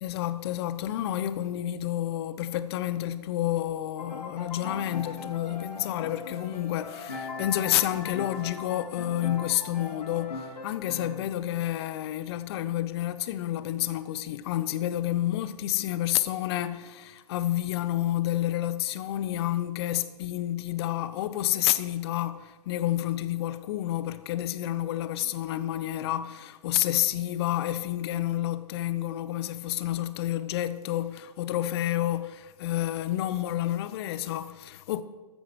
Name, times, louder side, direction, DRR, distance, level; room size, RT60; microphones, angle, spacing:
voice 1, 0.0-35.0, left 13 dB, 40° left, 0.9 m, -29 dB
Piano, 4.0-11.3, left 3 dB, 85° left, 2.2 m, -40 dB
Bell, 7.1-12.5, left 4 dB, 5° left, 1.6 m, -49 dB
14.5 x 9.3 x 6.1 m
figure-of-eight pair, 125°, 20 cm